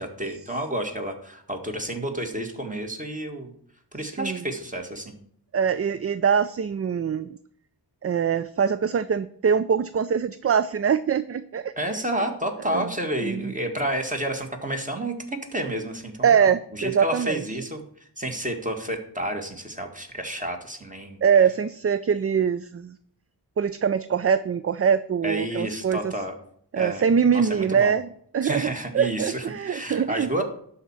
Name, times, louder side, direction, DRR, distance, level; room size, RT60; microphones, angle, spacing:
voice 1, 0.0-3.5 3.9-5.2 11.8-16.4 16.7-17.8 18.2-21.2 25.2-26.3 26.8-27.0 27.3-28.0 28.4-30.4, right 1 dB, 20° right, 3 dB, 1.9 m, -30 dB
voice 2, 5.5-7.4 8.0-11.7 12.7-12.8 13.2-13.5 16.2-17.4 21.2-22.9 23.6-26.1 26.7-28.1 28.3-30.3, right 7 dB, 35° right, 14 dB, 0.4 m, -23 dB
11.5 x 4.3 x 7.3 m, 0.64 s
wide cardioid pair, 85°, 41 cm